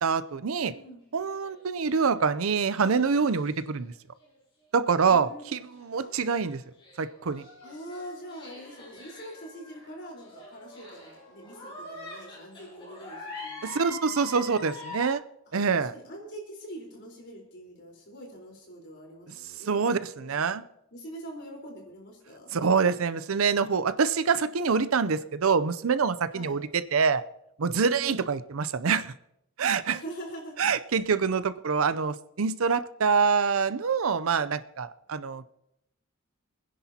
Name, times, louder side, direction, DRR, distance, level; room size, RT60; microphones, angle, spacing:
voice 1, 0.0-0.7 1.1-3.9 4.7-6.6 7.0-7.4 13.6-15.2 15.5-15.9 19.7-20.0 20.2-20.6 22.5-27.2 27.6-29.1 29.6-30.0 30.6-35.5, right 5 dB, 85° right, 14 dB, 0.6 m, -25 dB
voice 2, 0.6-1.0 5.0-5.4 6.0-6.1 7.6-13.7 14.1-14.5 15.5-20.5 20.9-22.5 26.3-26.6 27.9-28.3 29.9-30.6 30.9-31.1, right 1 dB, 55° left, -1 dB, 4.3 m, -44 dB
sound 1, 1.4-3.8 4.2-4.3 5.4-15.1, left 2 dB, 25° left, 6.7 m, -45 dB
27.0 x 10.0 x 2.9 m, 0.81 s
head